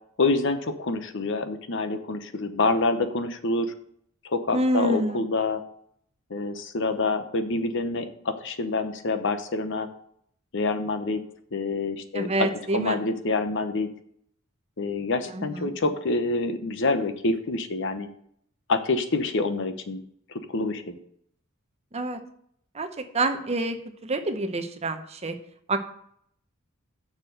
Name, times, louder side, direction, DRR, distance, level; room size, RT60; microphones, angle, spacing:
voice 1, 0.2-3.7 4.2-5.6 6.3-9.9 10.5-11.2 11.5-13.9 14.8-18.1 18.7-20.0 20.3-21.0, left 3 dB, 60° left, 9 dB, 0.9 m, -27 dB
voice 2, 4.5-5.2 12.1-13.0 15.3-15.7 21.9-22.2 22.7-23.8 24.0-25.3 25.7-25.8, right 2 dB, 30° right, 8 dB, 0.8 m, -27 dB
7.0 x 6.0 x 7.6 m, 0.67 s
head